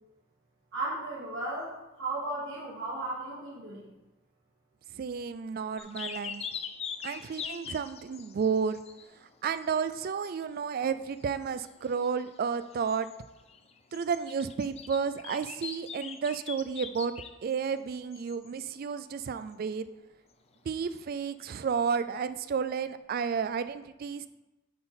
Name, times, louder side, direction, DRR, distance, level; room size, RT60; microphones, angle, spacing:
voice 1, 0.7-3.9, right 2 dB, 70° right, -6 dB, 2.3 m, -35 dB
voice 2, 4.9-6.4 7.0-8.8 9.4-13.1 13.9-17.1 17.4-19.9 20.7-24.3, right 6 dB, 45° right, 13 dB, 0.3 m, -32 dB
sound 1, 5.8-9.3 9.5-10.4 10.9-11.0 11.1-17.5 18.1-18.5 21.9-22.0, left 7 dB, 30° left, 0.4 m, -42 dB
10.0 x 3.8 x 4.3 m, 1.0 s
head